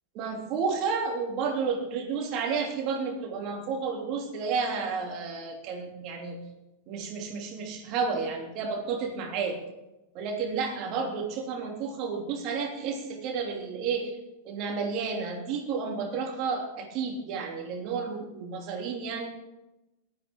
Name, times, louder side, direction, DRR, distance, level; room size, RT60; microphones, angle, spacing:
voice 1, 0.1-6.4 6.9-9.6 10.1-14.2 14.4-19.3, right 5 dB, 40° right, 2 dB, 3.0 m, -31 dB
18.0 x 13.0 x 3.8 m, 0.99 s
figure-of-eight pair, 90°, 0 cm